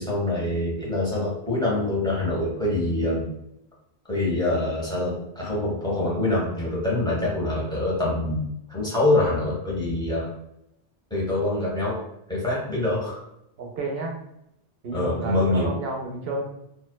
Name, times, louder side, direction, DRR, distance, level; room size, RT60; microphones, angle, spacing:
voice 1, 0.0-3.3 4.1-10.3 11.1-12.0 12.3-13.2 14.9-15.7, left 2 dB, 5° left, -6 dB, 0.7 m, -25 dB
voice 2, 13.6-14.1 14.8-16.6, right 2 dB, 70° right, 0 dB, 0.8 m, -31 dB
2.6 x 2.1 x 2.2 m, 0.79 s
omnidirectional pair, 1.1 m